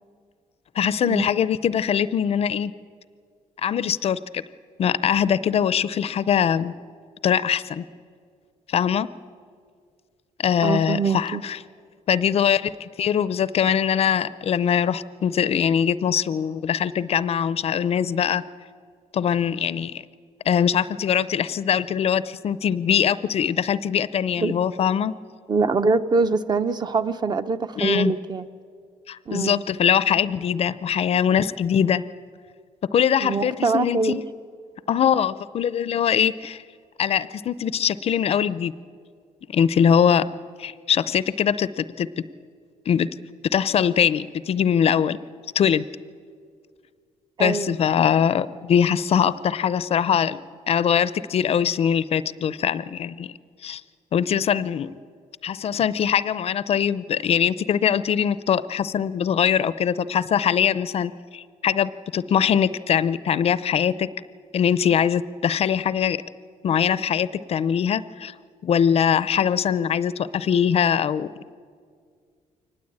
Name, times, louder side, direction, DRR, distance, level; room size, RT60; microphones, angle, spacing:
voice 1, 0.8-2.7 3.6-4.4 4.8-6.7 7.2-7.8 8.7-9.1 10.4-11.6 12.1-18.4 19.1-20.0 20.4-25.1 27.8-28.1 29.1-32.0 32.9-34.2 34.9-36.6 37.0-38.7 39.5-40.3 40.6-42.2 42.9-43.1 43.5-45.2 45.5-45.9 47.4-53.3 53.6-53.8 54.1-55.0 55.4-64.1 64.5-66.2 66.6-68.3 68.6-71.3, left 8 dB, 50° left, 16 dB, 0.6 m, -22 dB
voice 2, 10.6-11.4 24.4-24.5 25.5-28.5 29.3-29.6 33.2-34.2 47.4-47.8, right 4 dB, 35° right, 11 dB, 0.8 m, -23 dB
23.5 x 19.5 x 8.7 m, 2.1 s
cardioid pair, 135°, 13 cm